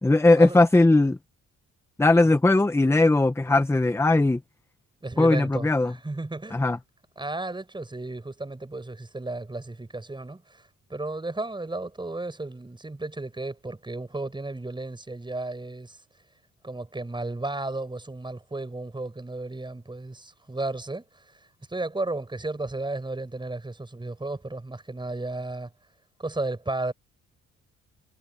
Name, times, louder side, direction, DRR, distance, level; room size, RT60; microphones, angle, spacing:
voice 1, 0.0-1.2 2.0-4.4 5.2-5.9 6.5-6.8, left 2 dB, 10° left, 0.9 m, -19 dB
voice 2, 5.0-6.6 7.2-16.0 16.6-21.4 21.7-25.7 26.2-26.9, right 2 dB, 15° right, 6.6 m, -34 dB
cardioid pair, 90°, 30 cm